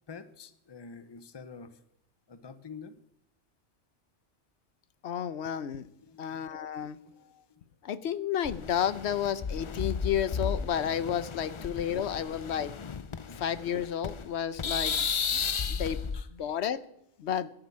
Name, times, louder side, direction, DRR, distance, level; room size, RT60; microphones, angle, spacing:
voice 1, 0.1-1.8 2.3-3.0 6.0-6.5 7.2-7.6 13.1-13.4 15.8-16.3, left 5 dB, 25° left, 11 dB, 0.8 m, -48 dB
voice 2, 5.0-5.9 6.2-7.0 7.8-12.7 13.3-16.0 16.3-16.8 17.2-17.5, left 9 dB, 70° left, 15 dB, 1.0 m, -32 dB
sound 1, 8.4-14.3 14.6-16.2, left 6 dB, 50° left, 0.3 m, -34 dB
12.0 x 7.8 x 9.8 m, 0.78 s
omnidirectional pair, 1.2 m